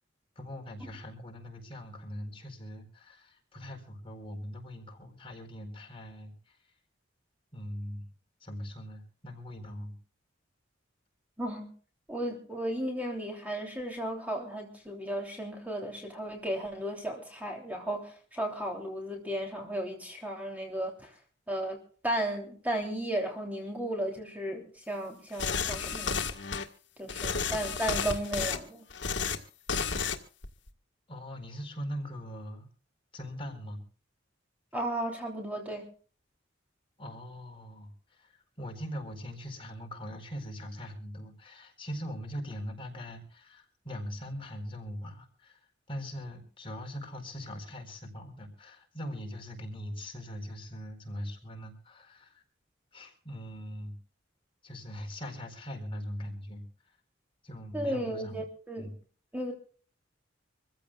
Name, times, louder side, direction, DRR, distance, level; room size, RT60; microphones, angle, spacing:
voice 1, 0.4-6.6 7.5-8.0 8.4-10.0 27.3-27.5 31.1-32.7 33.1-33.8 37.0-45.6 45.9-52.4 52.9-54.0 54.6-56.7 57.4-58.4 58.8-58.9, equal, 30° left, 2 dB, 4.4 m, -41 dB
voice 2, 11.4-11.7 12.1-21.1 21.5-21.8 22.0-26.2 27.0-28.8 34.7-35.9 57.7-58.9 59.3-59.5, right 1 dB, 10° right, 1 dB, 3.2 m, -34 dB
sound 1, 25.4-26.6 27.1-28.6 28.9-29.4 29.7-30.2 30.4-30.7, left 5 dB, 65° left, 1.8 m, -32 dB
26.0 x 15.5 x 2.4 m, 0.41 s
head